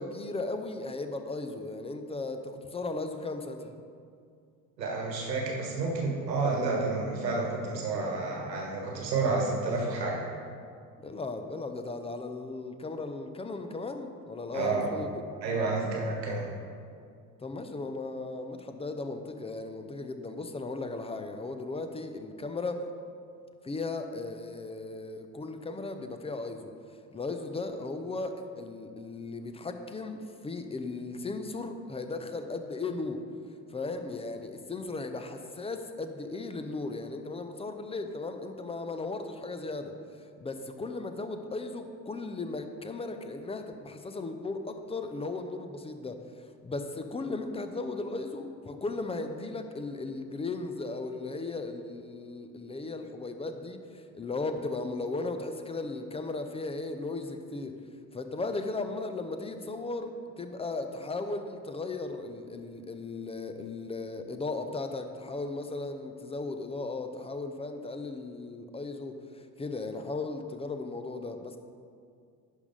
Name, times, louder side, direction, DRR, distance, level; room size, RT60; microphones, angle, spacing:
voice 1, 0.0-3.7 11.0-15.1 17.4-22.9 23.6-26.7 27.1-33.2 33.7-57.7 58.1-71.6, left 3 dB, 15° left, 7 dB, 0.5 m, -36 dB
voice 2, 4.8-10.2 14.5-14.9 15.4-16.5, right 3 dB, 85° right, -2 dB, 1.5 m, -30 dB
10.5 x 3.6 x 5.4 m, 2.3 s
figure-of-eight pair, 60°, 49 cm